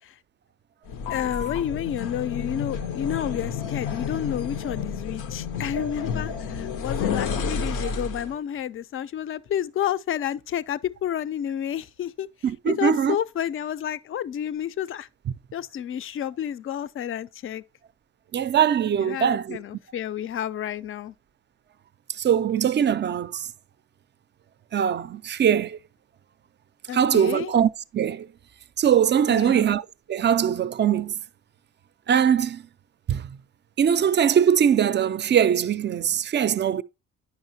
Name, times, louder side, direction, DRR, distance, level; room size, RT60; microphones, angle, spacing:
sound 1, 0.9-8.4, left 6 dB, 85° left, 0.8 m, -30 dB
voice 1, 1.1-12.3 12.7-15.1 15.5-17.6 19.0-21.1 26.9-27.5 29.3-29.7, left 10 dB, 45° left, 0.4 m, -30 dB
voice 2, 12.4-13.2 18.3-19.6 22.2-23.5 24.7-25.8 26.9-28.3 28.8-29.8 30.1-31.2 32.1-32.6 33.1-33.2 33.8-36.8, right 8 dB, 40° right, 0.4 m, -21 dB
9.6 x 5.5 x 2.7 m
cardioid pair, 90°, 30 cm